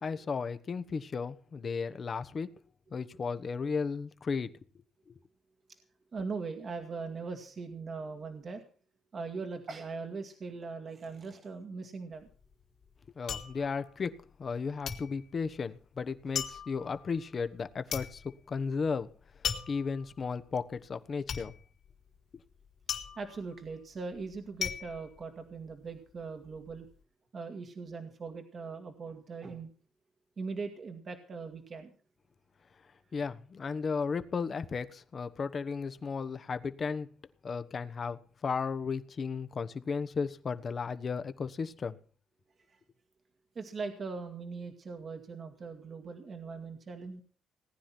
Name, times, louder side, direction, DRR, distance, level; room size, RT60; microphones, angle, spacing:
voice 1, 0.0-2.5 2.9-4.5 13.2-19.1 19.7-21.5 33.1-37.1 37.4-42.0, left 5 dB, 45° left, 11 dB, 1.2 m, -34 dB
voice 2, 6.1-8.6 9.1-12.3 23.2-26.9 27.3-29.7 30.4-31.9 42.7-42.8 43.6-47.2, right 4 dB, 45° right, 5 dB, 1.9 m, -40 dB
sound 1, 12.2-14.6 14.9-26.0 26.3-26.9, left 7 dB, 65° left, 3.0 m, -39 dB
18.5 x 9.9 x 5.9 m, 0.43 s
cardioid pair, 90°, 0 cm